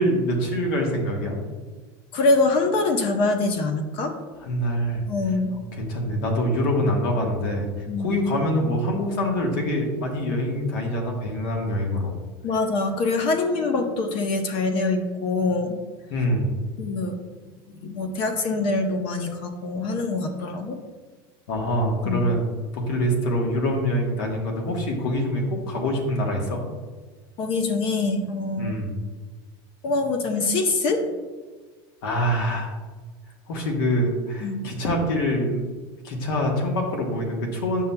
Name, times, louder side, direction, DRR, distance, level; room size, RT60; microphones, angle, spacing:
voice 1, 0.0-1.4 4.4-5.0 5.7-7.7 8.0-12.2 16.1-16.5 21.5-22.4 22.7-26.6 28.6-28.9 32.0-32.7 33.5-35.6 36.0-37.8, equal, 75° left, 1 dB, 1.4 m, -25 dB
voice 2, 2.1-4.1 5.1-5.5 7.9-8.2 12.4-15.8 16.8-17.2 17.7-20.8 22.0-22.2 27.4-28.8 29.8-31.1 34.4-34.7, left 3 dB, 50° left, 5 dB, 0.7 m, -24 dB
9.1 x 5.7 x 2.2 m, 1.3 s
supercardioid pair, 140°, 12 cm